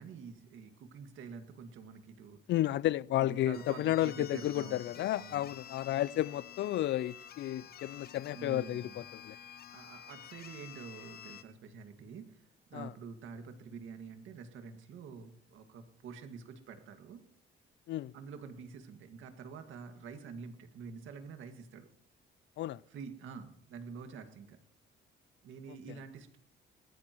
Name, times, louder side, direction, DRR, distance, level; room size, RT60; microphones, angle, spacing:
voice 1, 0.0-2.4 3.2-5.5 7.6-7.7 8.3-9.1 9.4-12.4 12.7-17.2 18.1-21.9 22.9-24.6 25.4-26.4, right 5 dB, 80° right, 2.0 m, -47 dB
voice 2, 2.5-9.4 12.7-12.9 17.9-18.1 22.6-22.8, left 14 dB, 65° left, 0.4 m, -32 dB
sound 1, 3.2-11.4, left 9 dB, 50° left, 0.8 m, -50 dB
20.0 x 14.5 x 3.1 m
cardioid pair, 90°, 20 cm